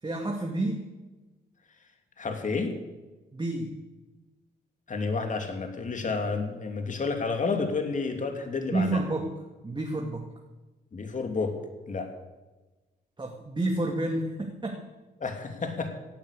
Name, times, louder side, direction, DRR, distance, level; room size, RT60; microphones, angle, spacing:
voice 1, 0.0-0.8 3.3-3.7 8.7-9.3 9.6-10.3 13.2-14.8, right 2 dB, 25° right, 1 dB, 2.4 m, -29 dB
voice 2, 2.2-2.7 4.9-9.0 10.9-11.5 11.9-12.1 15.2-15.9, left 4 dB, 45° left, 5 dB, 2.9 m, -30 dB
16.5 x 10.0 x 8.4 m, 1.2 s
supercardioid pair, 60°, 18 cm